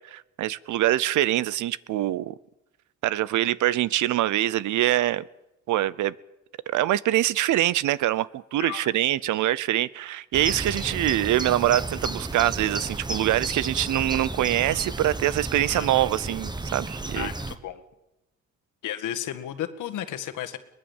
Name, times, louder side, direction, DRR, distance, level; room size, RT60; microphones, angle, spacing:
voice 1, 0.1-2.3 3.0-5.2 5.7-6.1 6.7-17.3, right 14 dB, 80° right, 20 dB, 0.8 m, -24 dB
voice 2, 8.6-8.9 15.7-16.0 17.1-17.8 18.8-20.6, left 11 dB, 80° left, 7 dB, 1.9 m, -33 dB
sound 1, 10.3-17.6, right 2 dB, 15° right, 1.4 m, -33 dB
23.0 x 19.0 x 7.2 m, 0.95 s
cardioid pair, 90°, 30 cm